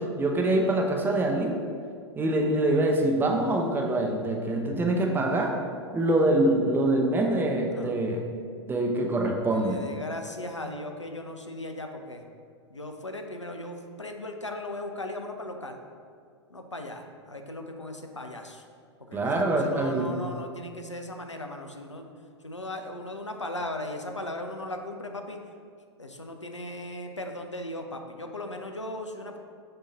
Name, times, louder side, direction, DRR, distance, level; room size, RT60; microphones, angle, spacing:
voice 1, 0.0-1.6 2.2-5.6 5.9-8.2 8.7-9.8 19.1-20.1, right 1 dB, 15° right, 1 dB, 0.7 m, -25 dB
voice 2, 9.5-12.2 12.7-15.8 16.5-18.6 19.0-22.1 22.4-25.4 26.0-29.4, left 1 dB, 90° left, 4 dB, 0.5 m, -37 dB
6.7 x 2.8 x 5.3 m, 2.2 s
figure-of-eight pair, 95°, 15 cm